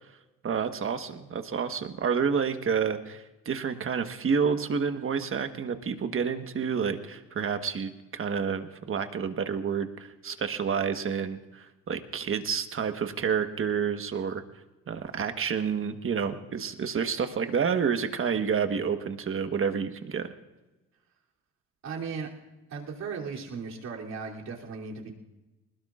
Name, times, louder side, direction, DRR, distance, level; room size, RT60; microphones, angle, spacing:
voice 1, 0.4-14.4 14.9-20.3, right 6 dB, 45° right, 8 dB, 1.4 m, -29 dB
voice 2, 21.8-22.3 22.7-25.1, right 5 dB, 60° right, -2 dB, 3.2 m, -36 dB
20.5 x 19.5 x 2.5 m, 1.1 s
cardioid pair, 80°, 30 cm